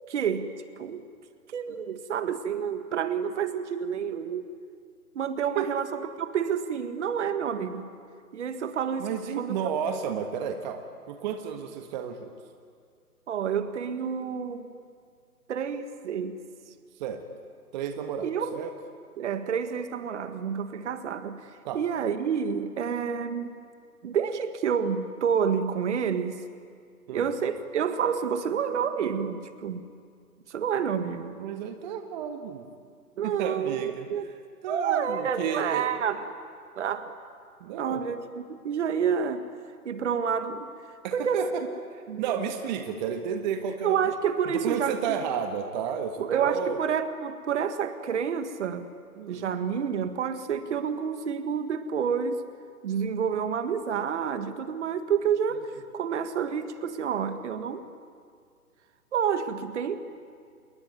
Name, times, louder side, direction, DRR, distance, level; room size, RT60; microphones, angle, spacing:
voice 1, 0.1-1.0 1.5-4.5 5.1-5.9 6.2-7.9 8.3-9.7 13.3-14.7 15.5-16.4 18.2-18.6 19.2-21.4 21.7-23.5 24.0-26.4 27.1-29.9 30.5-31.4 33.2-34.3 34.7-36.3 36.8-37.1 37.8-39.4 39.9-40.7 41.1-41.5 42.1-42.4 43.8-45.2 46.2-48.9 49.3-52.4 52.8-57.9 59.1-60.0, right 7 dB, 45° right, 9 dB, 1.8 m, -29 dB
voice 2, 9.0-12.3 16.9-17.2 17.7-18.7 21.6-21.8 27.1-27.3 31.4-32.7 33.2-34.1 34.6-35.9 37.6-38.0 41.0-41.6 41.9-44.0 44.4-46.8 49.2-49.5, right 8 dB, 30° right, 6 dB, 1.5 m, -32 dB
27.5 x 21.5 x 9.5 m, 2.1 s
hypercardioid pair, 140°, 47 cm